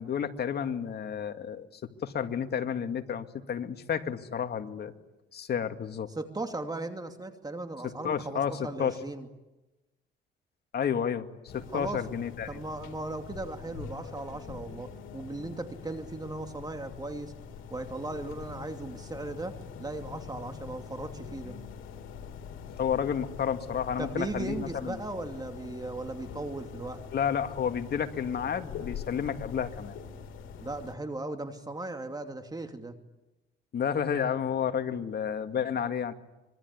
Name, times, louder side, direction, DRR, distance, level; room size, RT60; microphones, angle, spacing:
voice 1, 0.0-4.9 5.3-6.1 8.0-8.9 10.7-11.3 11.5-12.6 22.8-25.0 27.1-29.9 33.7-36.1, left 8 dB, 55° left, 6 dB, 2.3 m, -31 dB
voice 2, 6.1-9.3 11.7-12.0 12.5-17.3 17.7-21.6 24.0-27.0 30.6-33.0, right 2 dB, 20° right, 5 dB, 2.6 m, -37 dB
sound 1, 11.5-31.0, left 6 dB, 85° left, 3.4 m, -44 dB
25.5 x 23.0 x 9.8 m, 1.0 s
cardioid pair, 90°, 20 cm